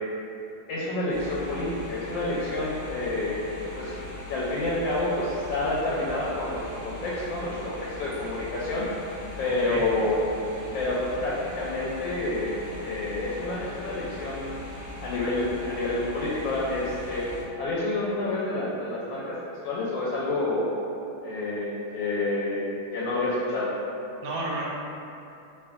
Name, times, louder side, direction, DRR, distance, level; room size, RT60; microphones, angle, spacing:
voice 1, 0.7-3.9 4.3-8.9 9.4-10.2 10.7-12.6 12.8-14.5 15.0-17.3 17.6-19.4 19.6-20.8 21.2-22.7 22.9-23.7, left 2 dB, 75° left, -6 dB, 1.2 m, -28 dB
sound 1, 1.1-17.4, left 2 dB, 55° right, 1.3 m, -40 dB
voice 2, 9.4-9.9 24.2-24.7, right 2 dB, 70° right, -4 dB, 1.2 m, -32 dB
4.1 x 3.0 x 2.4 m, 2.8 s
omnidirectional pair, 2.2 m